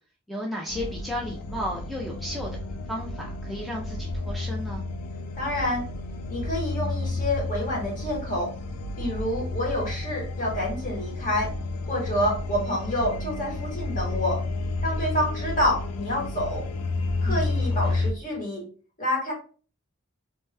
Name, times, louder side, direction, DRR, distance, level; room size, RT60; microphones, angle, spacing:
voice 1, 0.3-2.5 2.9-4.8 17.3-17.5 17.9-18.0, equal, ahead, -2 dB, 0.3 m, -34 dB
sound 1, 0.7-18.1, left 2 dB, 85° left, 0.4 m, -31 dB
voice 2, 5.4-5.8 6.3-8.5 9.0-11.5 11.9-14.4 14.8-16.6 17.2-18.6 19.0-19.3, left 1 dB, 35° left, -2 dB, 1.1 m, -28 dB
2.6 x 2.2 x 3.2 m, 0.39 s
head